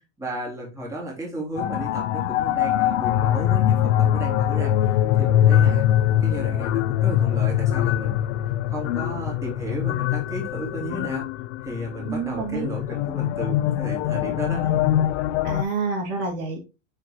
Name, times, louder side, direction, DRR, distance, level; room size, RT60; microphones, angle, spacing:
voice 1, 0.2-5.8 6.2-8.2 8.7-11.3 11.6-14.8, right 1 dB, 10° right, -4 dB, 3.1 m, -33 dB
HV-Darkplane, 1.6-15.6, left 11 dB, 85° left, 0.7 m, -23 dB
voice 2, 12.1-12.7 15.4-16.6, right 4 dB, 45° right, 1 dB, 2.8 m, -28 dB
8.8 x 4.5 x 3.0 m, 0.27 s
supercardioid pair, 150°, 35 cm